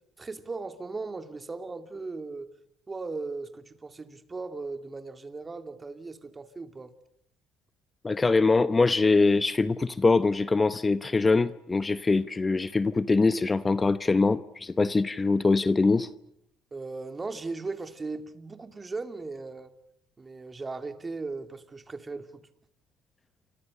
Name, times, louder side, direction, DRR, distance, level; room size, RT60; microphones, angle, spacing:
voice 1, 0.2-2.5 2.9-6.9 16.7-19.7 20.2-22.4, right 3 dB, 25° right, 2.8 m, -37 dB
voice 2, 8.0-16.1, left 3 dB, 25° left, 0.9 m, -23 dB
29.0 x 25.5 x 6.6 m
supercardioid pair, 75°, 0 cm